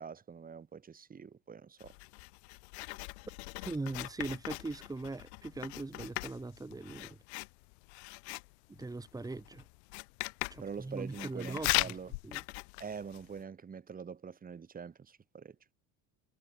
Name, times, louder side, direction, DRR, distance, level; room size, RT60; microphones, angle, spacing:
voice 1, 0.0-1.9 10.6-12.1 12.8-15.7, right 6 dB, 25° right, 4.4 m, -44 dB
Writing, 1.8-13.4, left 31 dB, 85° left, 1.6 m, -40 dB
voice 2, 3.6-7.2 8.7-9.6 10.5-12.0 12.2-12.4, right 3 dB, 10° right, 3.2 m, -40 dB
supercardioid pair, 115°, 32 cm